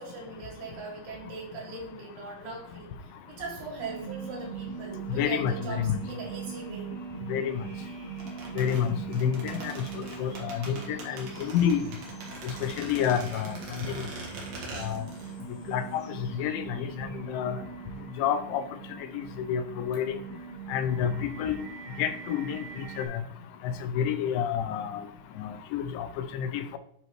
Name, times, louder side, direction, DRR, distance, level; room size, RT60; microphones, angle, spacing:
voice 1, 0.0-7.0 12.9-13.2, right 4 dB, 75° right, -3 dB, 3.6 m, -40 dB
sound 1, 3.8-23.1, right 6 dB, 25° right, 3.3 m, -41 dB
voice 2, 5.2-6.0 7.3-7.6 8.6-8.9 9.2-11.8 12.4-13.6 13.9-14.0 14.8-15.0 15.7-16.0 16.4-17.6 18.2-18.6 19.1-19.2 19.5-20.2 20.7-21.6 22.0-22.6 23.0-23.2 23.6-25.0 25.4-26.8, left 8 dB, 85° left, 10 dB, 2.3 m, -29 dB
sound 2, 8.2-15.3 15.6-15.7, right 3 dB, 55° right, 2.3 m, -42 dB
9.8 x 4.4 x 3.0 m, 0.67 s
omnidirectional pair, 4.1 m